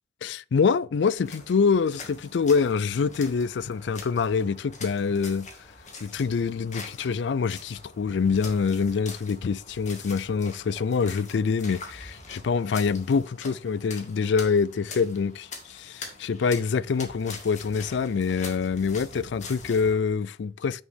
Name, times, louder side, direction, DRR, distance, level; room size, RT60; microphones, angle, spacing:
voice 1, 0.2-5.5 6.0-20.8, left 5 dB, 75° left, 0.4 m, -25 dB
sound 1, 1.1-20.0, left 3 dB, 40° left, 2.0 m, -44 dB
9.8 x 6.3 x 3.6 m
head